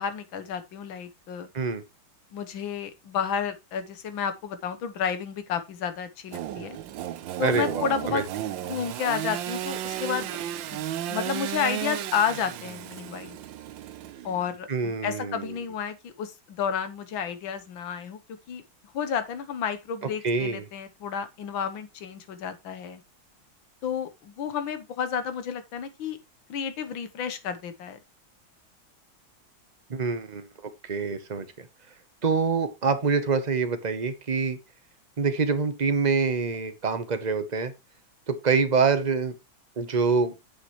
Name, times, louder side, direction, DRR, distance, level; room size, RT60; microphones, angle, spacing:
voice 1, 0.0-1.5 2.3-6.8 7.4-10.4 10.7-13.4 14.2-18.6 18.9-23.0 23.8-26.2 26.5-28.0, left 7 dB, 75° left, 1.8 m, -31 dB
Engine / Sawing, 6.3-14.6, right 11 dB, 75° right, 1.3 m, -34 dB
voice 2, 7.4-8.2 14.7-15.5 20.2-20.6 29.9-30.4 30.8-31.7 32.2-34.6 35.2-37.7 38.3-39.3 39.8-40.3, right 5 dB, 35° right, 0.6 m, -25 dB
8.9 x 7.8 x 3.1 m
omnidirectional pair, 2.2 m